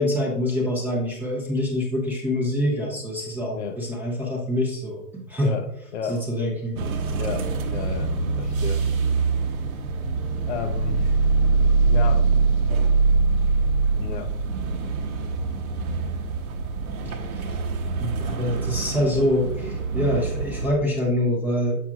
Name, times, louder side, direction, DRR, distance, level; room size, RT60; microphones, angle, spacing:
voice 1, 0.0-5.5 6.1-6.8 17.3-17.6 18.0-21.8, left 1 dB, 5° right, -3 dB, 0.6 m, -25 dB
voice 2, 5.4-6.2 7.2-8.9 10.5-11.1 11.8-12.3 14.0-14.3, left 6 dB, 50° left, 8 dB, 0.5 m, -33 dB
sound 1, 6.8-20.7, right 4 dB, 65° right, 1.0 m, -24 dB
7.2 x 5.8 x 2.3 m, 0.79 s
hypercardioid pair, 140°, 46 cm